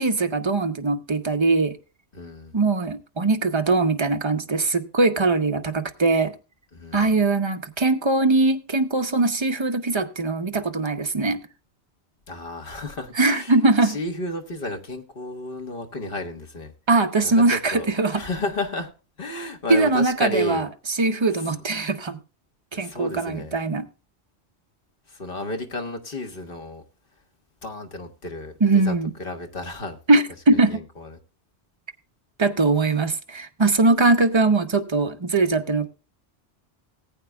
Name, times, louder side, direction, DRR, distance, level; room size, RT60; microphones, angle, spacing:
voice 1, 0.0-1.8 2.5-6.3 6.9-11.4 13.2-14.0 16.9-18.2 19.7-20.6 21.0-22.2 22.7-23.8 28.6-29.1 30.1-30.8 32.4-35.9, right 3 dB, 30° right, 0.8 m, -21 dB
voice 2, 2.1-2.5 6.7-7.0 12.3-16.7 17.2-18.9 19.2-20.6 22.7-23.6 25.1-26.8 27.6-30.0 30.5-31.2, left 2 dB, 55° left, 1.6 m, -32 dB
19.0 x 8.7 x 2.3 m
omnidirectional pair, 1.1 m